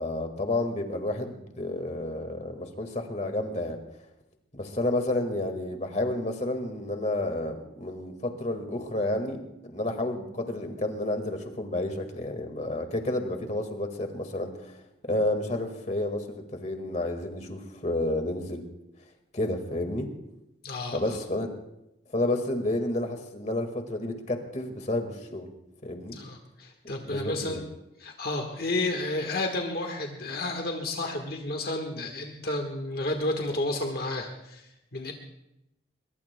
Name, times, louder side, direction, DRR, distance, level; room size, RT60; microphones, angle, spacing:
voice 1, 0.0-3.8 4.5-14.7 15.0-18.6 19.3-20.1 20.9-21.5 22.1-25.5 25.8-26.2 27.0-27.6, left 1 dB, 40° left, 5 dB, 1.8 m, -30 dB
voice 2, 20.6-21.2 26.1-27.6 28.0-35.1, left 2 dB, 55° left, 3 dB, 1.5 m, -31 dB
22.0 x 22.0 x 2.2 m, 0.88 s
head